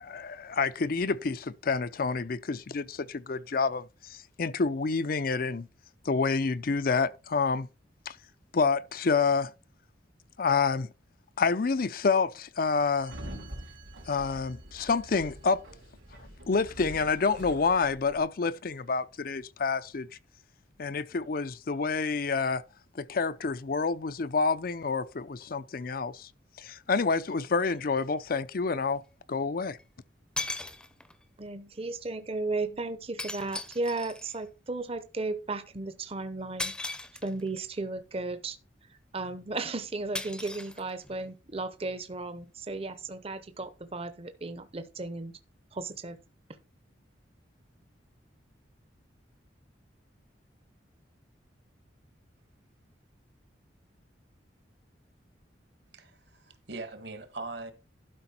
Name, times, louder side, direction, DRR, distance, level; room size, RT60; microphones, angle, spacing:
voice 1, 0.0-3.8 4.1-5.7 6.1-7.7 8.1-8.2 8.5-9.5 10.4-10.9 11.4-13.1 14.1-15.6 16.5-20.1 20.8-22.6 23.0-26.3 26.6-29.0 29.3-29.8, left 4 dB, 50° left, 0.5 m, -28 dB
Sliding door, 13.0-18.2, right 1 dB, 85° right, 3.2 m, -45 dB
sound 1, 27.6-27.7 29.8-29.9 30.4-31.2 33.2-34.4 36.6-37.6 40.1-41.2, left 2 dB, 5° left, 0.6 m, -38 dB
voice 2, 31.4-36.7 37.2-38.6 38.9-45.3 45.7-46.2, right 3 dB, 30° right, 0.8 m, -35 dB
voice 3, 55.9-57.7, right 3 dB, 60° right, 1.7 m, -41 dB
12.0 x 5.1 x 4.3 m
head